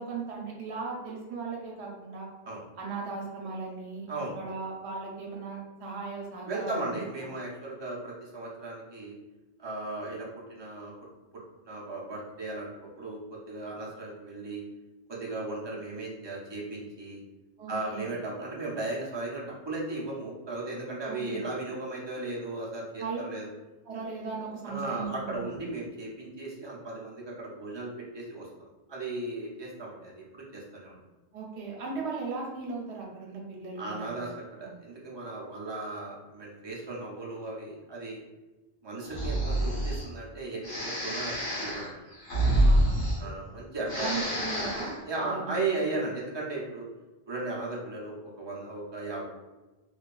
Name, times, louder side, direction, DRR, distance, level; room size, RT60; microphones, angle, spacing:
voice 1, 0.0-2.3 2.8-6.9 7.2-7.3 17.6-18.1 21.0-21.4 23.0-23.2 23.9-25.6 31.3-34.2 42.6-43.0 43.9-45.7, right 4 dB, 80° right, -1 dB, 0.9 m, -37 dB
voice 2, 6.5-9.2 9.6-10.9 11.6-14.6 15.1-17.2 17.7-23.5 24.6-28.5 28.9-31.0 33.8-38.2 38.8-41.3 41.6-42.0 43.2-44.1 45.1-46.9 47.3-49.3, right 2 dB, 35° right, -4 dB, 0.4 m, -36 dB
Breathing, 39.1-40.1 40.6-43.6 43.8-45.0, right 1 dB, 75° left, 1.3 m, -27 dB
2.7 x 2.3 x 2.3 m, 1.1 s
omnidirectional pair, 1.1 m